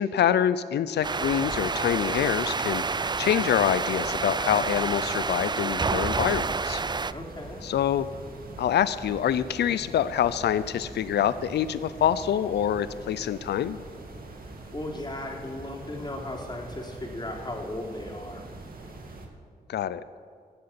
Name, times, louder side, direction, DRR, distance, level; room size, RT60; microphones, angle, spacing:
voice 1, 0.0-2.8 3.2-6.8 7.6-8.1 8.6-13.8 19.7-20.0, left 9 dB, 85° left, 15 dB, 0.5 m, -26 dB
sound 1, 1.0-7.1, right 4 dB, 25° right, 0.4 m, -28 dB
sound 2, 1.0-19.3, right 2 dB, 60° right, 2.4 m, -43 dB
voice 2, 7.1-7.6 14.7-18.5, left 1 dB, 25° left, -1 dB, 3.7 m, -36 dB
14.5 x 8.1 x 8.7 m, 2.1 s
cardioid pair, 45°, 17 cm